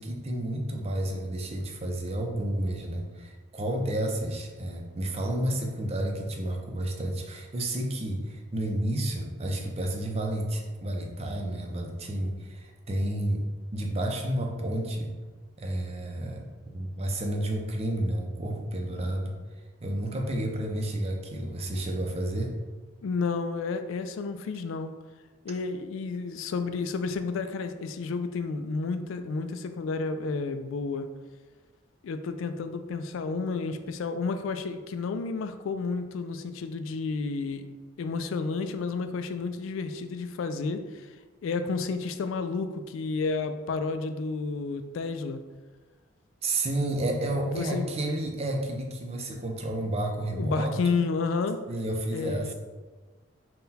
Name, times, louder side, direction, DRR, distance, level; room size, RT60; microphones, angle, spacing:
voice 1, 0.0-13.5 13.7-15.2 15.6-16.5 16.7-19.4 19.8-22.5 46.4-51.0 51.7-52.5, right 1 dB, 30° right, 2 dB, 0.5 m, -31 dB
voice 2, 23.0-24.9 25.4-31.1 32.0-37.7 38.0-41.1 41.4-45.4 47.0-47.1 47.5-47.9 50.3-51.6 52.1-52.5, left 4 dB, 80° left, 10 dB, 0.3 m, -31 dB
3.8 x 2.2 x 4.0 m, 1.3 s
head